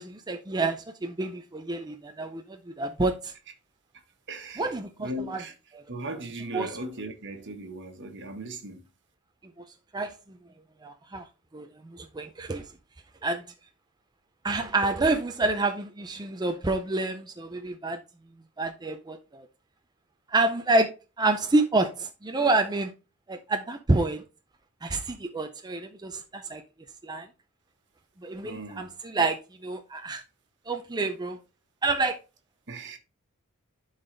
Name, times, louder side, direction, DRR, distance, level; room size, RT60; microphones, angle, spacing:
voice 1, 0.0-3.3 4.6-4.9 5.3-5.4 6.5-6.7 9.9-10.1 10.8-11.3 11.5-12.7 13.2-13.4 14.4-18.0 18.6-19.5 20.3-22.9 23.3-24.2 24.8-26.6 27.0-27.3 28.2-30.2 30.7-31.4 31.8-32.2, right 2 dB, 20° right, 0.5 m, -28 dB
voice 2, 4.3-5.5 5.9-8.8 28.4-28.9 30.0-30.1 32.7-33.0, right 1 dB, 55° right, 1.4 m, -38 dB
11.0 x 4.0 x 3.3 m
head